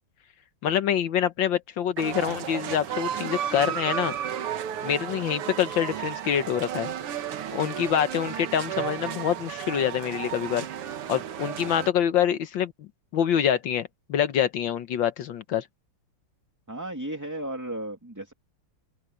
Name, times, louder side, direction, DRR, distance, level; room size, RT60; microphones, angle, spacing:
voice 1, 0.6-4.1 4.8-6.9 7.5-10.7 11.1-15.7, left 9 dB, 65° left, 1.6 m, -26 dB
sound 1, 2.0-11.9, right 10 dB, 85° right, 2.2 m, -33 dB
voice 2, 16.7-18.3, right 1 dB, 10° right, 2.6 m, -34 dB
omnidirectional pair, 2.4 m